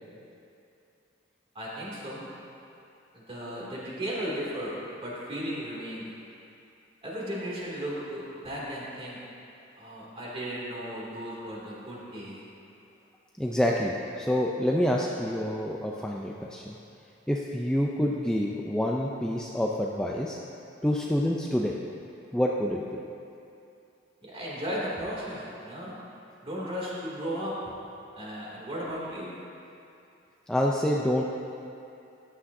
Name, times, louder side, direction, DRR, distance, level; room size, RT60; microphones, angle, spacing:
voice 1, 1.5-2.3 3.1-6.0 7.0-9.2 9.8-12.3 24.2-26.0 26.4-27.5 28.2-29.3, equal, 30° right, -6 dB, 2.6 m, -35 dB
voice 2, 13.4-16.7 17.3-20.4 20.8-21.8 22.3-23.0 30.5-31.2, equal, 5° left, -2 dB, 0.4 m, -27 dB
14.5 x 10.0 x 2.7 m, 2.7 s
head